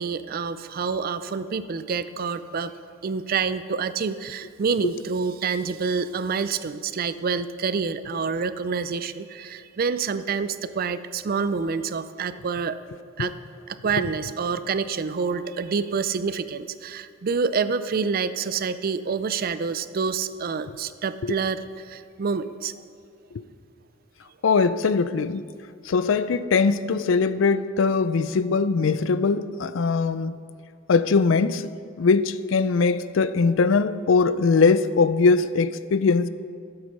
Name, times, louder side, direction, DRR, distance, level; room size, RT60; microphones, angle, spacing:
voice 1, 0.0-2.7 3.0-12.8 13.2-13.3 13.7-21.6 21.9-22.7, right 5 dB, 45° right, 13 dB, 0.4 m, -27 dB
voice 2, 24.4-25.4 25.9-30.4 30.9-31.7 32.0-36.3, left 4 dB, 70° left, 14 dB, 0.4 m, -21 dB
12.0 x 8.0 x 5.4 m, 2.2 s
head